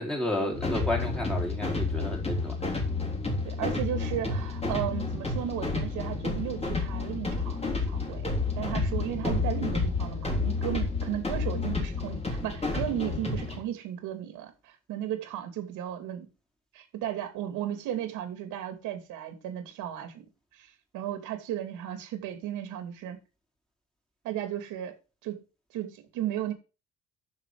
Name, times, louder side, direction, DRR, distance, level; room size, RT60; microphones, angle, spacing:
voice 1, 0.0-2.6, left 1 dB, ahead, 3.8 m, -31 dB
sound 1, 0.5-13.6, left 3 dB, 20° left, 3.4 m, -30 dB
voice 2, 3.4-8.3 8.6-16.3 16.7-20.3 20.5-23.2 24.2-24.9 25.2-25.4 25.7-26.5, right 11 dB, 90° right, 2.7 m, -35 dB
10.5 x 6.7 x 4.9 m
cardioid pair, 125°, 30 cm